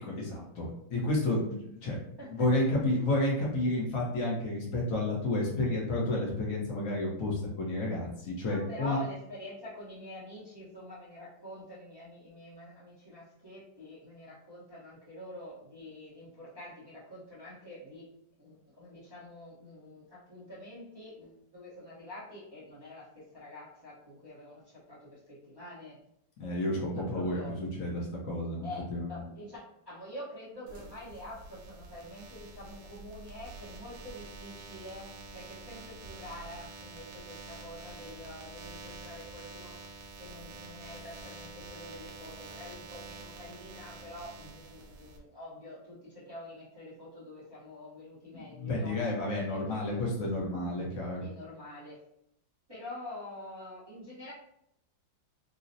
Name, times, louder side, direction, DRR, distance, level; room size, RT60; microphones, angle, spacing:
voice 1, 0.0-2.0 2.3-9.0 26.4-29.1 48.3-51.2, left 2 dB, 60° left, -4 dB, 0.9 m, -31 dB
voice 2, 2.2-2.7 8.4-18.1 18.4-26.0 26.9-27.6 28.6-39.7 40.2-48.9 49.4-50.0 51.2-52.0 52.7-54.3, left 1 dB, 30° right, -10 dB, 0.5 m, -46 dB
sound 1, 30.7-45.2, right 3 dB, 85° right, 1.4 m, -47 dB
3.8 x 2.0 x 2.6 m, 0.77 s
omnidirectional pair, 2.2 m